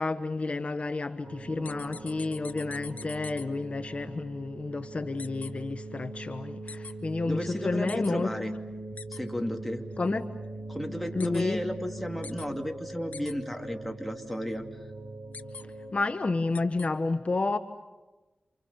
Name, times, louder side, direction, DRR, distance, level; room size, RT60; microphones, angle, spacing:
voice 1, 0.0-8.3 10.0-10.2 11.1-11.6 15.9-17.6, left 3 dB, 45° left, 1.0 m, -30 dB
sound 1, 1.2-15.9, right 2 dB, 60° right, 5.7 m, -41 dB
sound 2, 1.6-3.4 5.2-5.5 6.7-6.9 7.9-8.1 9.0-9.2 11.2-11.4 12.2-12.5 13.1-13.3 15.3-15.6 16.5-16.9, left 5 dB, 70° left, 1.4 m, -43 dB
voice 2, 7.3-8.5 9.1-9.9 10.7-14.6, equal, ahead, 2.6 m, -33 dB
28.5 x 27.5 x 6.9 m
wide cardioid pair, 65°, 3 cm